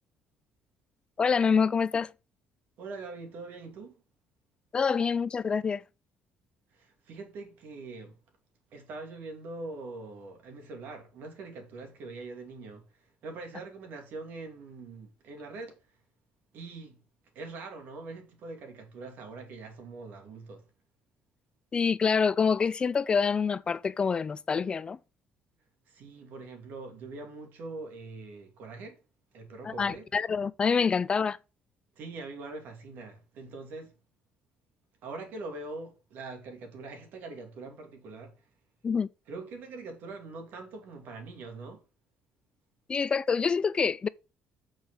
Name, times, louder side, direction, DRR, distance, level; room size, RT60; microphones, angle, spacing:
voice 1, 1.2-2.1 4.7-5.8 21.7-25.0 29.6-31.4 38.8-39.1 42.9-44.1, left 5 dB, 25° left, 0.3 m, -26 dB
voice 2, 2.8-4.0 6.7-8.2 8.7-12.8 13.2-15.8 16.5-17.0 17.3-20.6 25.9-29.0 29.3-30.1 32.0-33.9 35.0-38.3 39.3-41.8, right 3 dB, 65° right, 2.7 m, -43 dB
6.3 x 5.1 x 6.3 m
cardioid pair, 135°, 3 cm